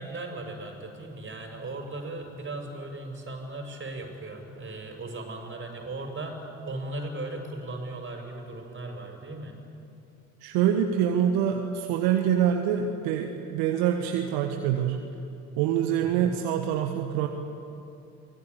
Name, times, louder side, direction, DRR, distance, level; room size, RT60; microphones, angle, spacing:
voice 1, 0.0-6.4 6.7-9.6 16.0-16.3, right 2 dB, 30° right, 2 dB, 6.7 m, -37 dB
voice 2, 10.4-15.0 15.6-17.3, right 9 dB, 70° right, 5 dB, 1.4 m, -25 dB
24.5 x 18.5 x 8.5 m, 2.7 s
figure-of-eight pair, 50°, 39 cm